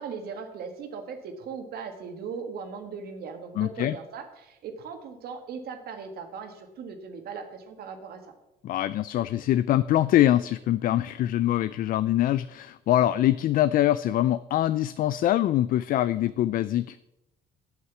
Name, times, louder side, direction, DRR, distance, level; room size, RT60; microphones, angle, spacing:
voice 1, 0.0-8.3, right 5 dB, 65° right, 6 dB, 1.7 m, -38 dB
voice 2, 3.6-4.0 8.6-17.0, left 13 dB, 55° left, 15 dB, 0.4 m, -24 dB
8.2 x 8.0 x 7.1 m, 0.91 s
cardioid pair, 110°, 17 cm